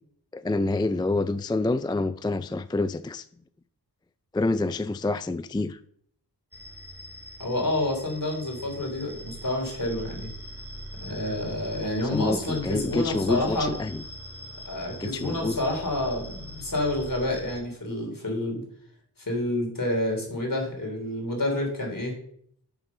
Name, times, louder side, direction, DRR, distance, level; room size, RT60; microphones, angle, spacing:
voice 1, 0.3-3.2 4.3-5.8 12.1-14.0 15.0-15.6, left 2 dB, 10° left, 0.3 m, -27 dB
sound 1, 6.5-17.6, equal, 5° right, 4.1 m, -42 dB
voice 2, 7.4-10.3 11.0-13.7 14.6-18.6 19.2-22.1, left 1 dB, 55° left, 3.3 m, -29 dB
7.0 x 5.4 x 5.8 m
wide cardioid pair, 50°, 39 cm